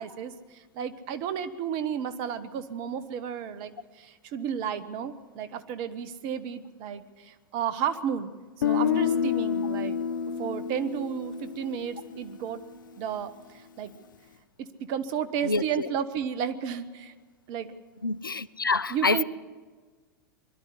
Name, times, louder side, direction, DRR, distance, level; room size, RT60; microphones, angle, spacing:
voice 1, 0.0-8.3 8.6-10.0 10.4-12.6 13.0-13.9 14.6-17.1 17.5-17.7 18.9-19.2, right 8 dB, 45° right, 1.4 m, -33 dB
Guitar, 8.6-12.6, left 7 dB, 70° left, 1.0 m, -29 dB
voice 2, 15.4-15.9 18.0-19.2, left 3 dB, 90° left, 0.6 m, -27 dB
22.5 x 12.0 x 9.9 m
figure-of-eight pair, 95°, 11 cm